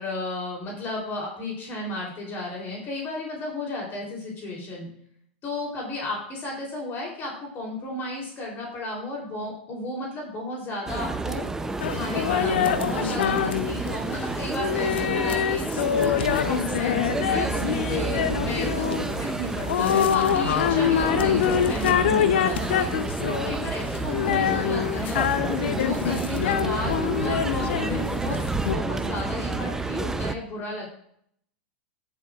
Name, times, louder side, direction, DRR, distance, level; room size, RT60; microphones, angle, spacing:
voice 1, 0.0-4.9 5.4-11.5 11.9-25.2 25.7-28.4 28.7-30.9, left 2 dB, 35° left, -2 dB, 3.2 m, -34 dB
sound 1, 10.9-30.3, right 3 dB, 10° right, 0.6 m, -30 dB
sound 2, 11.8-28.7, left 8 dB, 70° left, 0.7 m, -25 dB
15.0 x 7.6 x 2.4 m, 0.68 s
hypercardioid pair, 105°, 6 cm